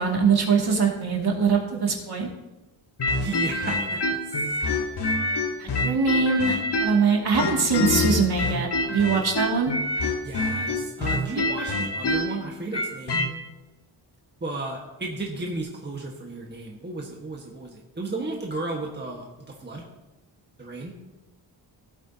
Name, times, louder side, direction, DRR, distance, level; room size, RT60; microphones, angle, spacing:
voice 1, 0.0-2.3 5.6-9.7, right 5 dB, 55° right, 0 dB, 2.4 m, -23 dB
sound 1, 3.0-7.0 7.3-13.3, left 2 dB, 55° left, 1.6 m, -26 dB
voice 2, 3.2-4.6 10.2-13.2 14.4-19.8 20.6-20.9, right 2 dB, 20° right, 0 dB, 1.5 m, -34 dB
16.0 x 8.5 x 2.8 m, 1.0 s
wide cardioid pair, 95°, 47 cm